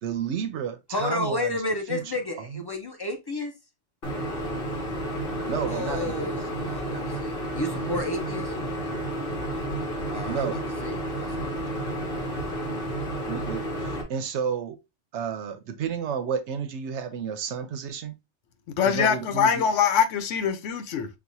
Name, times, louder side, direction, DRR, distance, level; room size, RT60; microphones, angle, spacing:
voice 1, 0.0-1.6 1.9-2.0 2.5-2.6 5.5-6.4 10.3-10.6 13.3-14.8 15.1-18.2 18.8-19.6, right 7 dB, 70° right, 0.9 m, -31 dB
voice 2, 0.9-3.5 5.7-8.6 10.1-11.5, left 2 dB, 25° left, 0.6 m, -32 dB
sound 1, 4.0-14.0, right 1 dB, 50° left, 1.2 m, -31 dB
voice 3, 18.8-21.1, left 7 dB, 85° left, 1.0 m, -23 dB
5.9 x 2.4 x 2.6 m
omnidirectional pair, 1.3 m